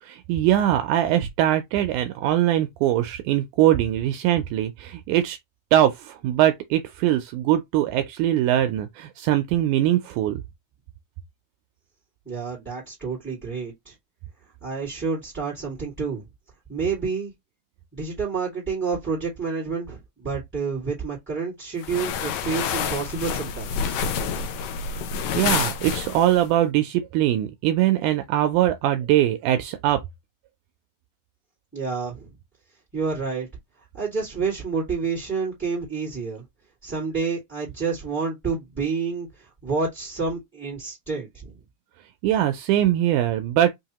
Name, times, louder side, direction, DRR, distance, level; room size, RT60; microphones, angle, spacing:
voice 1, 0.0-5.4 5.7-10.4 25.4-30.0 42.2-43.7, right 12 dB, 85° right, 2.0 m, -22 dB
voice 2, 12.2-13.9 14.6-16.2 16.7-17.3 17.9-24.0 31.7-32.3 32.9-33.5 33.9-36.4 36.8-41.6, right 5 dB, 5° right, 1.4 m, -29 dB
sound 1, 21.8-26.5, left 7 dB, 75° left, 1.9 m, -28 dB
5.3 x 2.8 x 2.9 m
omnidirectional pair, 3.6 m